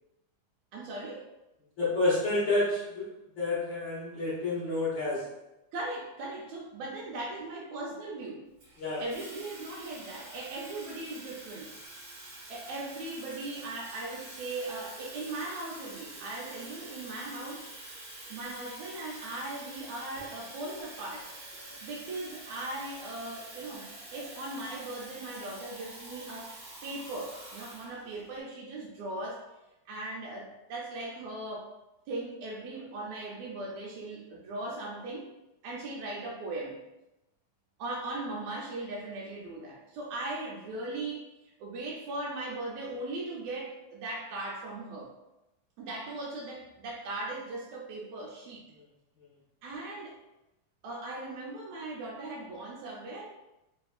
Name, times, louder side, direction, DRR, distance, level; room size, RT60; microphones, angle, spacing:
voice 1, 0.7-1.3 5.7-8.5 9.0-11.7 12.5-17.7 18.3-21.3 21.8-26.6 26.8-29.5 29.9-31.7 32.1-35.3 35.6-36.8 37.8-41.3 41.6-45.1 45.8-48.7 49.6-50.2 50.8-53.3, right 2 dB, 80° right, -2 dB, 1.8 m, -38 dB
voice 2, 1.8-3.1 3.4-5.3 8.8-9.0, left 2 dB, 75° left, -10 dB, 1.1 m, -29 dB
Water tap faucet / Fill (with liquid), 8.6-28.3, right 2 dB, 60° right, 1.2 m, -47 dB
4.3 x 3.3 x 2.3 m, 0.94 s
omnidirectional pair, 3.5 m